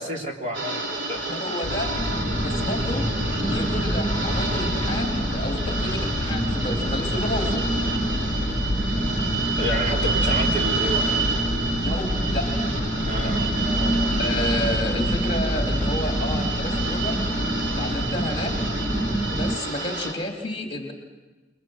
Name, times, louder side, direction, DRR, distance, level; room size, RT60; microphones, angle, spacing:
voice 1, 0.0-1.2 9.6-11.1 13.1-14.2, right 1 dB, 40° right, 0 dB, 3.1 m, -30 dB
sound 1, 0.5-20.1, right 3 dB, 80° right, 3.5 m, -29 dB
voice 2, 1.3-1.9 2.4-3.1 3.4-7.7 11.8-12.4 13.2-13.3 14.2-17.2 17.8-18.6 19.3-20.9, left 2 dB, 30° left, 2 dB, 2.8 m, -31 dB
sound 2, 1.6-19.1, left 2 dB, 70° left, 0.7 m, -33 dB
sound 3, 2.0-19.6, right 1 dB, 10° right, 0.8 m, -27 dB
28.5 x 22.5 x 6.3 m, 1.2 s
head